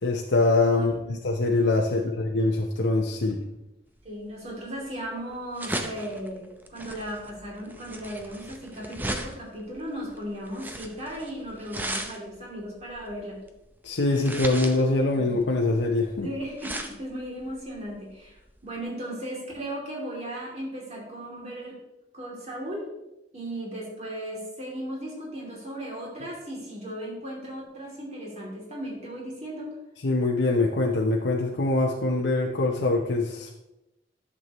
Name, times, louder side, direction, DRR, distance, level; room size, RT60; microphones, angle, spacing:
voice 1, 0.0-3.4 13.8-16.3 30.0-33.5, left 2 dB, 85° left, 0 dB, 0.8 m, -24 dB
voice 2, 0.7-1.1 1.9-2.1 4.0-13.4 16.2-21.8 22.1-22.9 23.3-29.7, right 1 dB, 35° right, -3 dB, 2.8 m, -36 dB
sound 1, 4.0-18.8, right 1 dB, 10° right, 0.6 m, -37 dB
11.0 x 6.8 x 3.1 m, 0.92 s
head